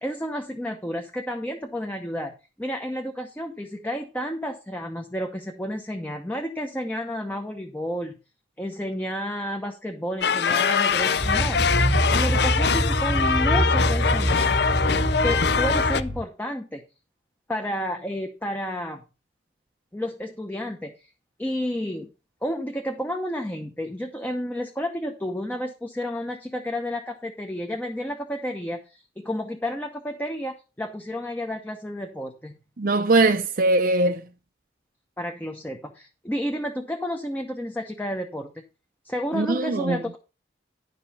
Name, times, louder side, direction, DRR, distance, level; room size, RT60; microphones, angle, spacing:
voice 1, 0.0-2.3 2.6-8.1 8.6-14.6 15.2-16.8 17.5-19.0 19.9-20.9 21.4-22.1 22.4-32.6 35.2-38.5 39.0-40.2, equal, 10° left, 0.9 m, -31 dB
sound 1, 10.2-16.0, left 6 dB, 65° left, 0.5 m, -23 dB
sound 2, 11.2-16.2, right 1 dB, 30° left, 2.0 m, -25 dB
voice 2, 32.8-34.2 39.3-40.0, right 2 dB, 55° right, 0.6 m, -21 dB
11.0 x 5.4 x 5.5 m
head